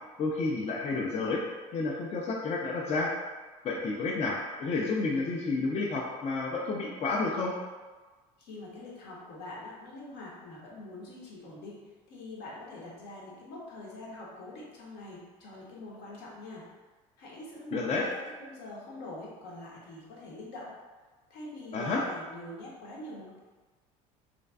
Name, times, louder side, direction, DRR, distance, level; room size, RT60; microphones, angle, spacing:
voice 1, 0.2-1.4 1.7-3.1 3.6-7.5 17.7-18.0 21.7-22.0, left 3 dB, 40° left, -2 dB, 0.4 m, -30 dB
voice 2, 8.4-11.8 12.1-16.7 17.2-18.1 18.4-20.7 21.3-23.4, left 2 dB, 70° left, -4 dB, 0.8 m, -44 dB
2.5 x 2.2 x 2.2 m, 1.3 s
supercardioid pair, 80°, 18 cm